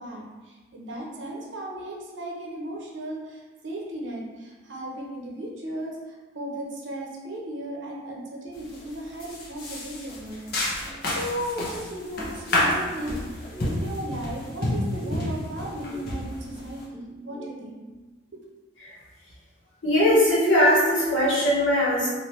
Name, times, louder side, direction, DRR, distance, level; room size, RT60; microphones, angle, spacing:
voice 1, 0.0-17.8, right 1 dB, 70° right, -2 dB, 0.7 m, -36 dB
sound 1, 8.6-8.8 9.2-16.8, left 1 dB, 50° left, 0.7 m, -29 dB
sound 2, 12.5-17.8, right 1 dB, 10° right, 0.5 m, -43 dB
voice 2, 19.8-22.1, left 1 dB, 80° left, -7 dB, 1.2 m, -20 dB
3.2 x 2.6 x 2.8 m, 1.3 s
head